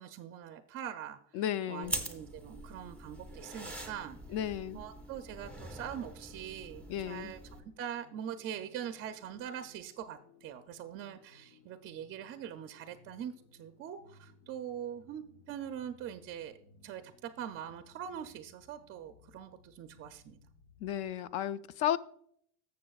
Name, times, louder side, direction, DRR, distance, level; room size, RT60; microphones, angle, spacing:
voice 1, 0.0-1.2 1.7-4.4 4.7-7.4 7.8-16.6 16.8-20.4, right 9 dB, 35° right, 8 dB, 0.4 m, -43 dB
voice 2, 1.3-1.9 4.3-4.8 6.9-7.3 20.8-22.0, left 11 dB, 60° left, 16 dB, 0.5 m, -33 dB
sound 1, 1.8-7.6, right 1 dB, 5° left, 0.8 m, -43 dB
sound 2, 6.3-21.2, left 5 dB, 90° left, 1.3 m, -63 dB
14.0 x 6.8 x 2.3 m, 0.67 s
cardioid pair, 155°, 42 cm